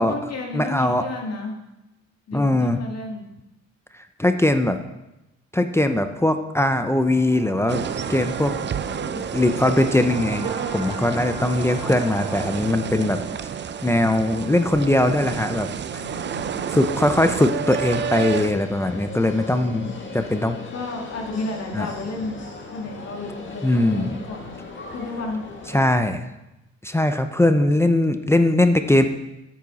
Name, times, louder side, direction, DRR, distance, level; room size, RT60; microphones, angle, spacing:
voice 1, 0.0-1.6 2.3-3.3 15.9-16.7 19.6-20.1 20.7-22.4 22.7-24.5 24.9-25.4, left 2 dB, 55° left, 1 dB, 2.1 m, -33 dB
voice 2, 0.5-1.0 2.3-2.8 4.2-4.8 5.5-7.8 8.1-8.5 9.1-13.2 13.8-15.7 16.7-20.6 21.7-21.9 23.6-24.2 25.7-26.3 26.8-29.1, left 1 dB, 10° left, 8 dB, 0.6 m, -20 dB
sound 1, 6.5-16.2, right 1 dB, 20° right, 1.8 m, -39 dB
sound 2, 7.7-18.5, right 8 dB, 40° right, 0.5 m, -30 dB
sound 3, 17.7-25.9, left 3 dB, 40° left, 1.8 m, -38 dB
8.9 x 7.5 x 4.1 m, 0.94 s
cardioid pair, 90°, 30 cm